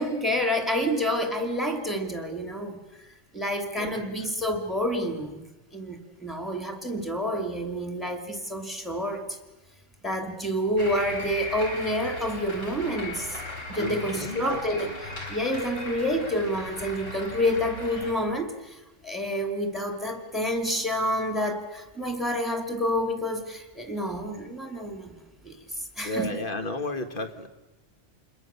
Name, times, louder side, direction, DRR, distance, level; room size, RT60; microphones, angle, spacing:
voice 1, 0.0-5.4 5.7-9.4 10.0-13.4 13.7-14.9 15.3-25.1 25.4-26.3, equal, ahead, 4 dB, 2.6 m, -28 dB
voice 2, 3.7-4.1 13.8-14.9 26.0-27.5, left 2 dB, 45° left, 7 dB, 1.8 m, -33 dB
sound 1, 10.8-18.1, left 1 dB, 80° left, 4.9 m, -38 dB
27.5 x 21.5 x 7.0 m, 1.1 s
omnidirectional pair, 1.3 m